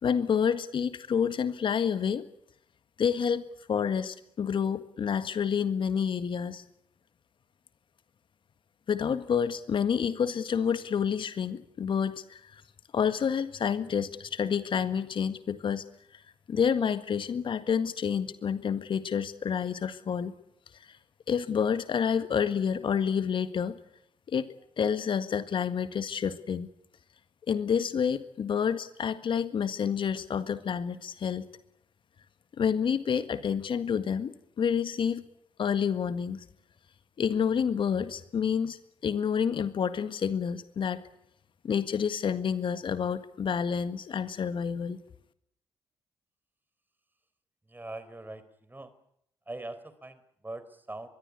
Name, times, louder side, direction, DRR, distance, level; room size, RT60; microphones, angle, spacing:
voice 1, 0.0-2.2 3.0-6.6 8.9-12.5 12.9-15.8 16.5-20.3 21.3-23.8 24.3-24.5 24.8-26.7 27.5-31.4 32.6-35.2 35.6-36.5 37.2-41.0 41.6-45.0, left 7 dB, 45° left, 12 dB, 1.7 m, -29 dB
voice 2, 47.6-48.9 49.5-51.1, right 2 dB, 15° right, 14 dB, 4.1 m, -42 dB
24.5 x 22.0 x 8.4 m, 0.74 s
figure-of-eight pair, 40°, 11 cm